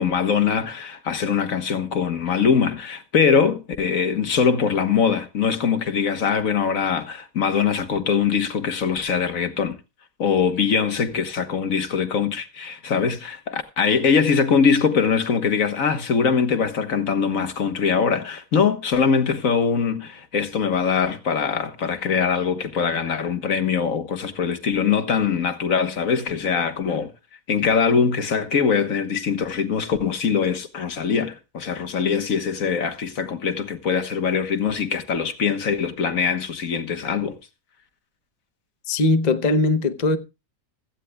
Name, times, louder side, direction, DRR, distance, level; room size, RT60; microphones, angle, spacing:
voice 1, 0.0-9.8 10.2-27.1 27.5-37.4, left 6 dB, 60° left, 1.6 m, -22 dB
voice 2, 38.9-40.2, left 2 dB, 35° left, 0.8 m, -20 dB
16.5 x 14.5 x 2.3 m
omnidirectional pair, 1.7 m